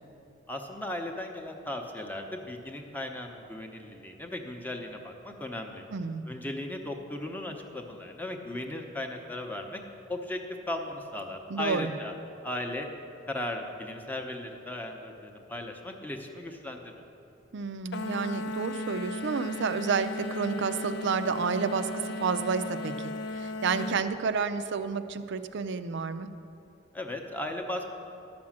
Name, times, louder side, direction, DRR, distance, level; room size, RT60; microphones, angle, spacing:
voice 1, 0.5-5.8 6.3-9.8 10.1-10.4 10.7-12.1 12.4-12.9 13.3-16.9 26.9-27.9, left 1 dB, 10° left, 3 dB, 0.8 m, -36 dB
voice 2, 5.9-6.3 11.5-11.9 17.5-26.3, right 5 dB, 65° right, 11 dB, 0.5 m, -30 dB
sound 1, 17.9-24.0, left 2 dB, 60° left, 0.6 m, -36 dB
11.5 x 6.1 x 7.4 m, 2.7 s
head